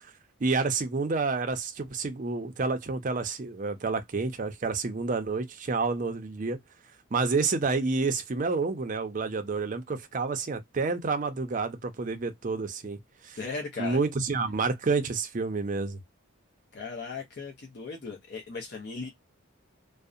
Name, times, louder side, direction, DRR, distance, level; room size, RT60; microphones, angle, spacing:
voice 1, 0.4-6.6 7.1-13.0 13.2-13.4 13.8-16.0, right 4 dB, 40° right, 0.4 m, -29 dB
voice 2, 13.4-14.0 16.7-19.1, left 4 dB, 50° left, 0.6 m, -37 dB
2.6 x 2.0 x 2.3 m
head